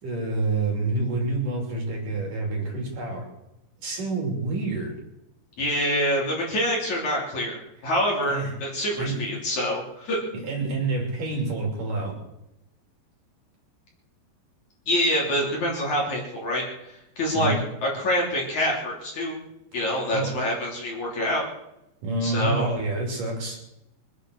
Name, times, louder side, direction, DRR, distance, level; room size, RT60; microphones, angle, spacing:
voice 1, 0.0-3.3 3.8-5.0 8.3-8.6 9.0-9.3 10.3-12.2 17.3-17.6 20.1-20.4 22.0-23.6, right 2 dB, 50° right, 0 dB, 4.5 m, -28 dB
voice 2, 5.6-10.2 14.9-17.5 17.8-19.4 19.7-21.4 22.2-22.7, equal, 45° left, -2 dB, 4.3 m, -26 dB
24.5 x 9.0 x 6.4 m, 0.87 s
omnidirectional pair, 5.0 m